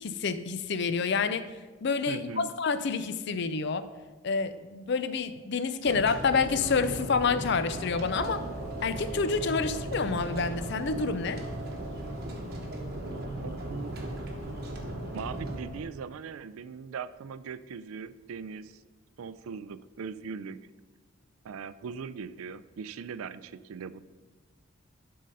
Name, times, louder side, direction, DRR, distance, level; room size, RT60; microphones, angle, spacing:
voice 1, 0.0-1.4 1.8-3.9 4.2-8.4 8.8-11.4, left 5 dB, 55° left, 12 dB, 0.5 m, -28 dB
voice 2, 2.1-2.5 13.4-14.0 15.1-18.8 19.2-20.6 21.4-24.0, right 6 dB, 80° right, 15 dB, 0.4 m, -40 dB
sound 1, 5.8-15.6, right 1 dB, 45° right, 1.1 m, -37 dB
sound 2, 7.9-15.8, right 2 dB, 35° left, 1.1 m, -44 dB
11.5 x 3.8 x 5.4 m, 1.3 s
head